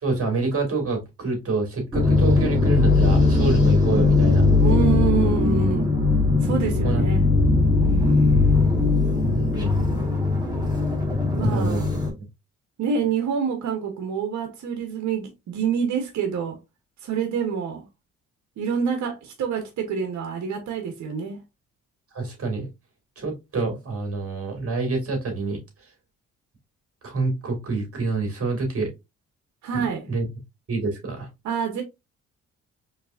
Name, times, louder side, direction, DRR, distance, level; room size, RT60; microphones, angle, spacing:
voice 1, 0.0-4.5 6.8-7.1 9.2-9.7 11.4-11.8 22.1-22.7 23.2-25.6 27.0-28.9 29.7-30.3 30.7-31.3, right 3 dB, 50° right, 2.6 m, -27 dB
sound 1, 1.9-12.1, left 3 dB, 15° right, 1.8 m, -19 dB
voice 2, 4.6-5.9 6.4-7.3 7.8-8.3 11.3-11.9 12.8-16.6 17.0-17.8 18.6-21.4 29.6-30.1 31.4-31.8, right 7 dB, 70° right, 1.2 m, -27 dB
4.5 x 3.4 x 2.6 m
cardioid pair, 90°, 30 cm